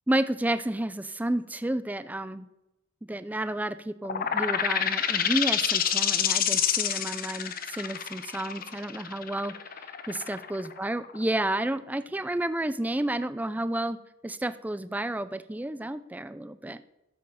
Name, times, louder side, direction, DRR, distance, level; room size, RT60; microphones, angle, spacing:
voice 1, 0.1-2.5 3.1-9.5 10.1-14.0 14.2-16.8, right 1 dB, 10° right, 13 dB, 0.4 m, -31 dB
sound 1, 4.0-11.4, left 8 dB, 45° left, 0.7 m, -28 dB
11.5 x 7.6 x 5.6 m, 0.94 s
head